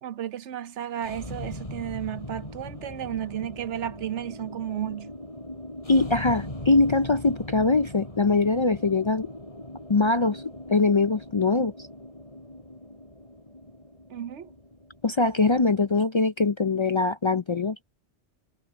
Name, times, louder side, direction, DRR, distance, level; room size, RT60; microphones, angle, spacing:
voice 1, 0.0-5.1 14.1-14.5, right 10 dB, 75° right, 1.1 m, -33 dB
sound 1, 0.9-15.9, left 1 dB, 30° left, 5.2 m, -40 dB
voice 2, 5.9-9.3 9.9-10.4 10.7-11.9 15.0-17.8, left 3 dB, 45° left, 0.4 m, -22 dB
omnidirectional pair, 1.2 m